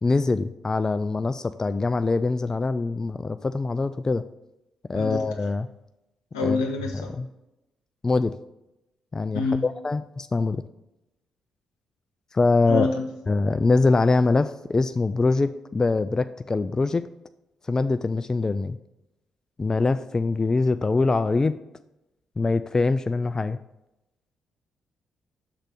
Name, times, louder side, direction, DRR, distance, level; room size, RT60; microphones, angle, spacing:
voice 1, 0.0-4.2 4.9-5.7 6.4-6.6 7.2-7.3 8.0-8.3 9.1-10.6 12.3-12.9 13.3-17.1 17.7-18.8 19.6-21.5 22.4-23.6, left 3 dB, 25° left, 11 dB, 0.3 m, -23 dB
voice 2, 6.3-7.2 9.3-9.6 12.7-13.0, left 4 dB, 85° left, 3 dB, 0.9 m, -26 dB
6.5 x 4.0 x 6.3 m, 0.92 s
hypercardioid pair, 45°, 2 cm